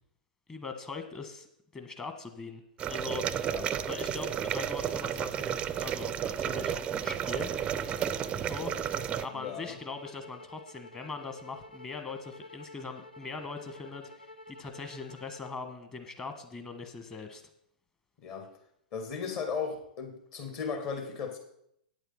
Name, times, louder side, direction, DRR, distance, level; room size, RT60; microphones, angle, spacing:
voice 1, 0.5-2.6 2.9-3.5 3.8-7.5 8.5-17.4, left 4 dB, 15° left, 6 dB, 1.4 m, -41 dB
sound 1, 2.8-9.3, right 9 dB, 20° right, 0.5 m, -32 dB
sound 2, 7.2-15.6, left 2 dB, 85° left, 0.7 m, -50 dB
voice 2, 9.3-9.8 18.2-18.5 18.9-21.4, left 6 dB, 40° left, 5 dB, 2.3 m, -36 dB
9.1 x 8.1 x 5.7 m, 0.73 s
figure-of-eight pair, 110°, 5 cm